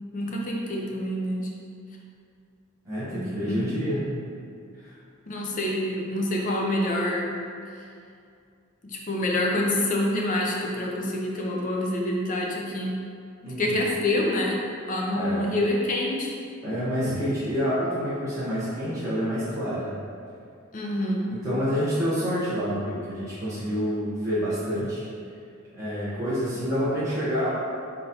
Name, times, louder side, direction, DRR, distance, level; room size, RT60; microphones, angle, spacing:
voice 1, 0.1-1.5 3.1-3.6 5.3-7.4 8.8-12.9 13.6-14.6 14.9-16.3 20.7-21.3, left 1 dB, 35° left, -2 dB, 0.5 m, -27 dB
voice 2, 2.8-4.0 4.8-4.9 13.4-13.8 15.1-15.5 16.6-20.0 21.3-25.0 25.8-27.5, equal, 15° right, -13 dB, 0.9 m, -28 dB
4.0 x 3.8 x 2.7 m, 2.4 s
head